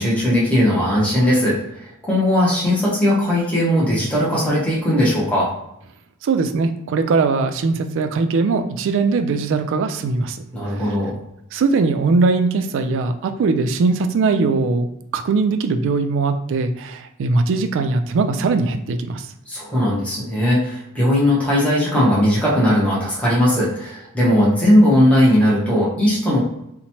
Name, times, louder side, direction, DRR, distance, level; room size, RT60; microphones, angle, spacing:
voice 1, 0.0-5.5 10.5-11.1 19.5-26.4, left 1 dB, 5° left, -7 dB, 0.7 m, -18 dB
voice 2, 6.2-10.9 11.5-14.9 15.1-19.3, right 4 dB, 60° right, 8 dB, 0.3 m, -20 dB
2.9 x 2.1 x 2.8 m, 0.81 s
head